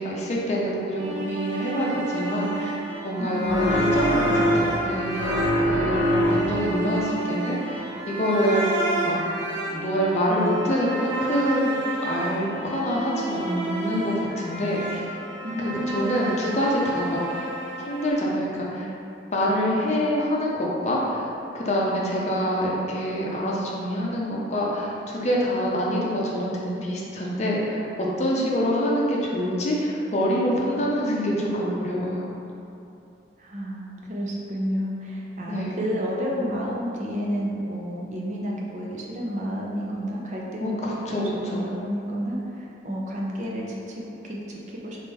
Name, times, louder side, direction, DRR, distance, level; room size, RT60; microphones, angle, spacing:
voice 1, 0.0-2.8 3.0-5.4 5.6-8.7 9.0-9.2 9.7-15.2 15.6-17.4 17.8-18.9 19.3-21.3 21.5-32.3 35.5-35.7 40.6-41.7, equal, 40° left, -4 dB, 0.6 m, -26 dB
sound 1, 1.0-18.1, right 2 dB, 80° right, 1.0 m, -31 dB
voice 2, 3.2-3.7 15.4-16.2 28.4-29.1 33.4-45.1, equal, 40° right, -3 dB, 0.6 m, -31 dB
sound 2, 3.5-4.9 5.2-6.7, equal, 75° left, 0.7 m, -23 dB
3.6 x 3.3 x 4.1 m, 2.8 s
head